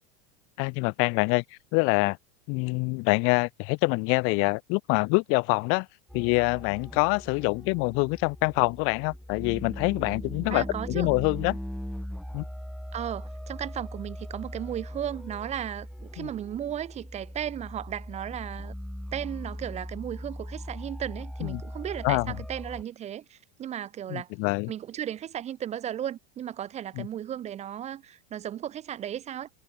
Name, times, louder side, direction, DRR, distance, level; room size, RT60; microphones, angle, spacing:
voice 1, 0.6-1.4 1.7-2.2 2.5-5.9 6.1-11.6 12.3-12.4 16.2-16.3 21.4-21.6 22.0-22.3 24.1-24.7 27.0-27.1, left 31 dB, 45° left, 0.6 m, -25 dB
sound 1, 6.1-22.8, equal, ahead, 2.0 m, -39 dB
voice 2, 10.5-11.1 12.9-18.7 19.1-24.3 24.7-29.5, right 10 dB, 25° right, 0.6 m, -35 dB
supercardioid pair, 145°, 29 cm